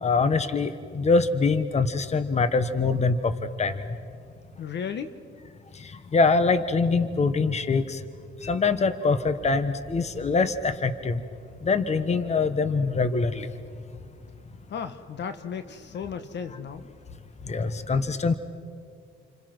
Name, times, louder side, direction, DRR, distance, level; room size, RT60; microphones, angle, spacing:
voice 1, 0.0-3.8 5.8-8.0 8.4-11.2 11.6-13.5 17.5-18.4, left 4 dB, 35° left, 11 dB, 1.4 m, -24 dB
voice 2, 4.6-5.1 14.7-16.8, left 7 dB, 60° left, 10 dB, 1.4 m, -34 dB
30.0 x 26.0 x 6.1 m, 2.2 s
cardioid pair, 90°, 20 cm